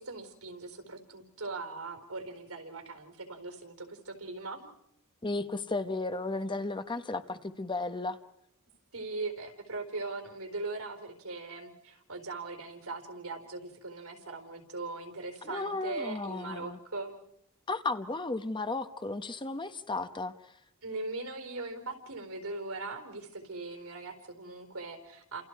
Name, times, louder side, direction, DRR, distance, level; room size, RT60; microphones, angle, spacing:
voice 1, 0.0-4.7 8.9-17.2 20.8-25.4, right 3 dB, 80° right, 4.3 m, -40 dB
voice 2, 5.2-8.2 15.4-16.8 17.7-20.3, left 3 dB, 20° left, 1.0 m, -34 dB
30.0 x 28.0 x 4.7 m
head